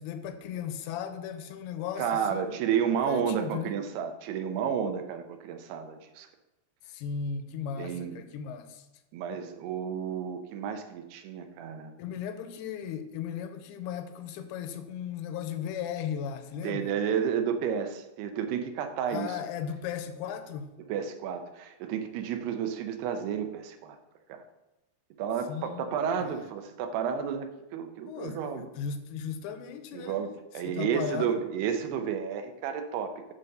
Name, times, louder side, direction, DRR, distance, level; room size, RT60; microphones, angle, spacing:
voice 1, 0.0-2.6 3.0-3.8 6.9-8.9 12.0-16.9 19.1-20.7 25.5-26.4 28.1-30.3 30.6-31.4, left 8 dB, 85° left, 9 dB, 2.6 m, -36 dB
voice 2, 2.0-6.3 7.8-8.2 9.1-11.9 16.6-19.4 20.9-24.0 24.3-24.4 25.2-28.7 29.9-33.3, right 7 dB, 80° right, 7 dB, 2.8 m, -31 dB
8.8 x 4.2 x 6.5 m, 0.98 s
omnidirectional pair, 4.7 m